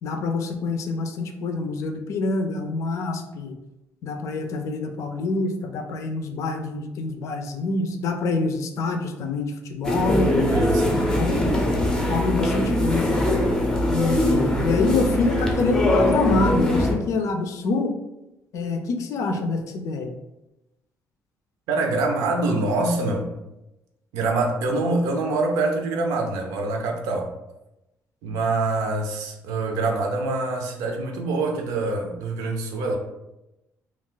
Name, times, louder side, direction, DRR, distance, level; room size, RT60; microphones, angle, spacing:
voice 1, 0.0-3.6 4.0-10.3 10.9-11.4 12.1-13.2 13.9-17.9 18.5-20.1, left 3 dB, 60° left, 5 dB, 0.4 m, -26 dB
sound 1, 9.8-16.9, left 1 dB, 10° left, 0.5 m, -22 dB
voice 2, 10.5-11.1 21.7-23.3 24.1-27.3 28.2-33.0, right 2 dB, 90° right, 2 dB, 0.6 m, -25 dB
2.4 x 2.3 x 3.8 m, 0.94 s
cardioid pair, 130°, 6 cm